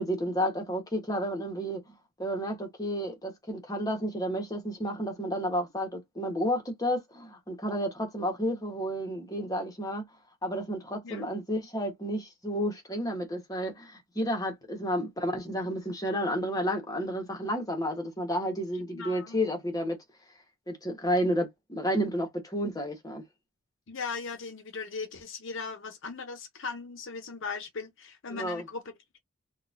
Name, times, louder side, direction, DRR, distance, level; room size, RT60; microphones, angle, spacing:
voice 1, 0.0-10.1 10.4-20.0 20.7-23.2 28.3-28.6, equal, 15° left, 1.0 m, -31 dB
voice 2, 18.9-19.4 23.9-29.2, left 4 dB, 60° left, 0.7 m, -38 dB
3.8 x 2.3 x 2.5 m
head